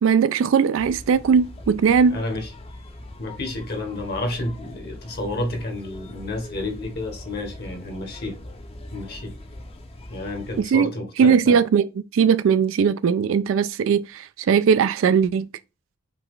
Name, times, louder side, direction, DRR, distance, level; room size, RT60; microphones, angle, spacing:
voice 1, 0.0-2.2 10.6-10.9 11.2-11.9 12.1-15.5, right 6 dB, 65° right, 0.3 m, -19 dB
sound 1, 0.8-10.6, left 1 dB, 25° left, 0.6 m, -41 dB
voice 2, 2.1-2.5 3.2-8.4 8.9-9.3 10.1-11.6 13.8-13.9, left 2 dB, 50° left, 1.1 m, -30 dB
5.7 x 2.4 x 3.6 m
head